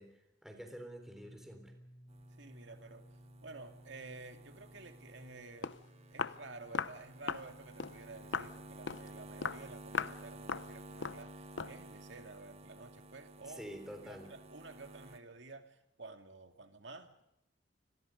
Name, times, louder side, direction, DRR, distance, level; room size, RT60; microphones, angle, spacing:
voice 1, 0.0-1.7 13.4-14.3, equal, ahead, 4 dB, 3.6 m, -48 dB
sound 1, 0.9-12.6, equal, 25° left, 4.0 m, -61 dB
sound 2, 2.1-15.2, right 2 dB, 35° right, 1.6 m, -53 dB
voice 2, 2.4-3.0 3.4-5.7 6.1-13.6 14.0-17.2, right 3 dB, 65° right, 6 dB, 2.4 m, -51 dB
Walk footsteps, 5.3-5.4 5.6-5.8 6.2-6.4 6.7-7.0 7.3-7.5 7.8-8.0 8.3-8.5 8.9-9.1 9.4-9.6 9.9-10.2 10.5-10.7 11.0-11.2 11.6-11.8, left 5 dB, 70° left, 0.8 m, -37 dB
28.5 x 22.0 x 5.3 m, 0.84 s
head